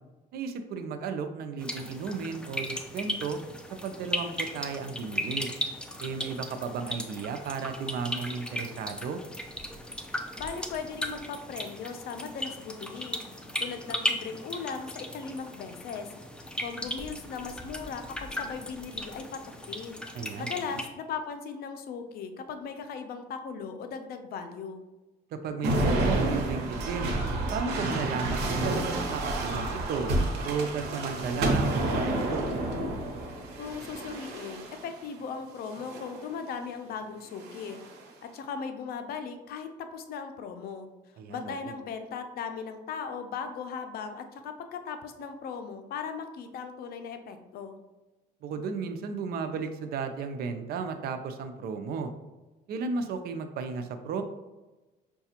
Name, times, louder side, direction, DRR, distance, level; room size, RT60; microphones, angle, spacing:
voice 1, 0.3-3.4 3.8-5.5 6.0-9.2 20.1-20.8 25.3-27.2 27.5-30.1 30.4-32.5 41.2-41.7 48.4-52.1 52.7-54.2, right 5 dB, 65° right, 7 dB, 0.5 m, -34 dB
sound 1, 1.6-20.9, left 1 dB, 5° left, 0.4 m, -37 dB
voice 2, 10.3-13.2 13.6-16.1 16.6-19.4 19.7-20.0 20.4-24.8 33.6-37.8 38.2-40.9 41.3-47.8, left 6 dB, 65° left, 7 dB, 0.5 m, -38 dB
sound 2, 25.6-35.0 35.7-36.2 37.3-38.0, right 2 dB, 85° right, 0.8 m, -30 dB
5.7 x 2.3 x 2.8 m, 1.1 s
cardioid pair, 110°, 17 cm